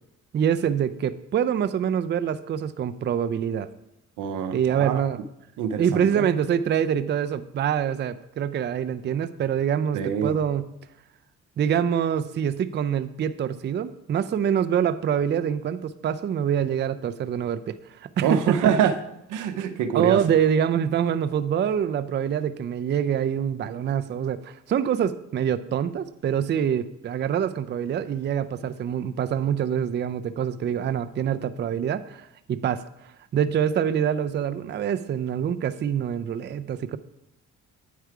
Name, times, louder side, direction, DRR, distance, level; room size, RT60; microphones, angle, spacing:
voice 1, 0.3-3.7 4.5-5.2 5.8-10.7 11.6-18.6 19.9-37.0, right 8 dB, 35° right, 11 dB, 0.4 m, -25 dB
voice 2, 4.2-5.0 5.6-6.2 9.9-10.4 18.2-18.9 19.3-20.2, right 8 dB, 80° right, 10 dB, 0.7 m, -25 dB
9.2 x 4.7 x 4.7 m, 0.84 s
cardioid pair, 90°, 30 cm